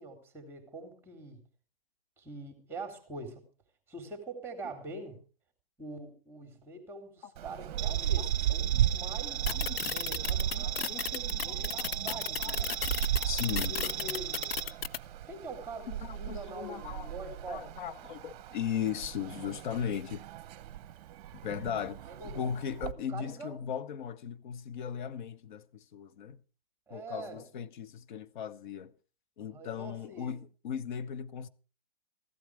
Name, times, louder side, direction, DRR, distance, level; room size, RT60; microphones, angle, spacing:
voice 1, 0.0-1.4 2.2-3.5 3.9-5.2 5.8-9.5 9.9-12.7 13.7-14.6 15.3-17.8 22.0-22.5 23.1-23.6 26.9-27.4 29.4-30.4, right 2 dB, 5° right, 3.4 m, -44 dB
sound 1, 7.4-22.9, right 11 dB, 40° right, 1.0 m, -35 dB
sound 2, 7.8-14.6, right 11 dB, 25° right, 2.5 m, -38 dB
sound 3, 9.5-15.0, left 9 dB, 70° left, 0.8 m, -33 dB
voice 2, 9.5-9.8 10.8-11.2 11.5-11.7 12.1-12.6 12.9-13.8 16.0-17.1 17.5-20.2 21.4-26.4 26.9-28.9 29.4-31.5, left 8 dB, 50° left, 1.0 m, -37 dB
15.0 x 12.5 x 4.9 m
hypercardioid pair, 130°, 30 cm